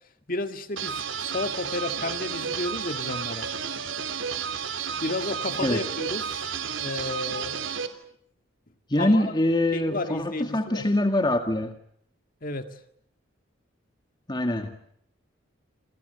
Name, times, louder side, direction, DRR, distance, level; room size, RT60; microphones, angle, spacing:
voice 1, 0.3-3.5 5.0-6.5 6.8-7.6 9.0-9.3 9.7-10.9 12.4-12.8, left 2 dB, 45° left, 7 dB, 1.9 m, -32 dB
sound 1, 0.8-7.9, right 7 dB, 85° right, 3.2 m, -32 dB
voice 2, 8.9-11.8 14.3-14.8, left 1 dB, 20° left, 6 dB, 2.0 m, -24 dB
29.0 x 29.0 x 6.8 m, 0.69 s
head